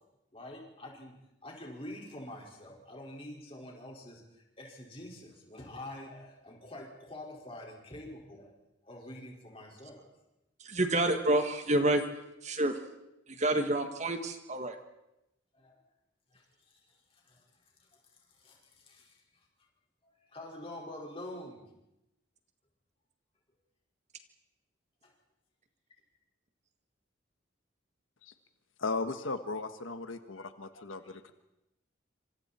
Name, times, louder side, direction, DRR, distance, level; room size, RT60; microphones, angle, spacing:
voice 1, 0.3-1.1 1.4-8.5 8.8-10.1 15.5-15.8 16.3-16.4 16.8-17.4 17.8-18.0 18.3-19.2 20.0-21.6 25.0-25.1, left 1 dB, 30° left, -1 dB, 5.1 m, -46 dB
voice 2, 10.6-12.0 12.4-12.8 13.3-14.7, right 1 dB, 35° right, 7 dB, 1.6 m, -28 dB
voice 3, 28.8-31.3, left 3 dB, 85° left, 9 dB, 1.4 m, -36 dB
27.5 x 26.0 x 4.4 m, 0.89 s
head